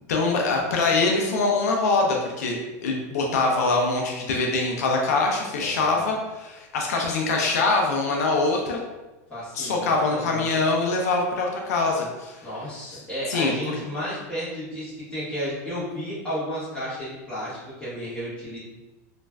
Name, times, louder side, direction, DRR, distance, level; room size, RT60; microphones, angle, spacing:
voice 1, 0.1-2.6 2.8-8.8 9.5-12.5 12.9-13.0 13.3-13.5, left 3 dB, 85° left, 0 dB, 0.5 m, -23 dB
voice 2, 5.6-6.1 9.3-10.6 12.4-18.6, equal, 10° left, -11 dB, 1.4 m, -33 dB
3.1 x 2.4 x 2.2 m, 1.1 s
supercardioid pair, 140°, 8 cm